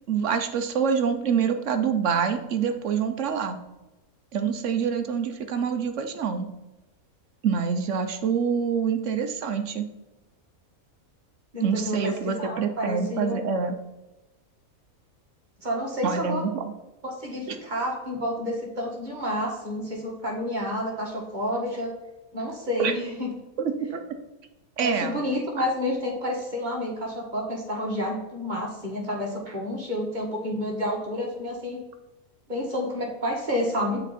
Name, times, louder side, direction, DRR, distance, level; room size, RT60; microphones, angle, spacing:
voice 1, 0.1-3.6 4.3-6.5 7.4-9.8 11.6-13.7 16.0-16.6 17.5-17.6 22.8-22.9 23.6-24.0 24.8-25.2 25.6-25.7, right 6 dB, 65° right, 7 dB, 1.0 m, -26 dB
voice 2, 11.5-13.4 15.6-16.4 17.0-21.9 22.3-23.3 24.8-31.8 32.5-34.0, equal, 35° right, -1 dB, 1.6 m, -29 dB
9.3 x 4.5 x 4.2 m, 1.0 s
omnidirectional pair, 1.5 m